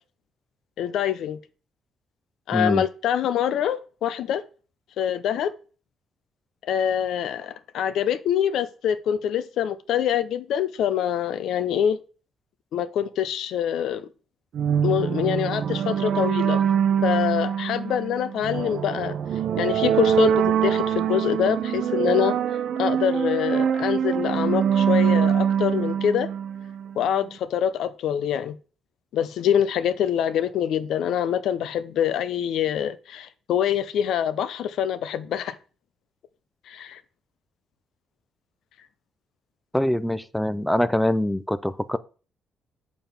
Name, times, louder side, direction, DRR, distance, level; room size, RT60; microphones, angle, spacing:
voice 1, 0.8-1.4 2.5-4.4 5.0-5.5 6.6-12.0 12.7-14.1 14.8-16.6 17.0-19.2 19.6-22.4 22.8-26.3 27.0-28.6 29.1-35.6 36.7-37.0, left 9 dB, 80° left, 0.5 m, -25 dB
voice 2, 2.5-2.8 39.7-42.0, left 1 dB, 5° left, 0.4 m, -24 dB
sound 1, 14.5-27.1, right 8 dB, 65° right, 0.6 m, -24 dB
6.8 x 3.6 x 5.8 m
cardioid pair, 90°, 0 cm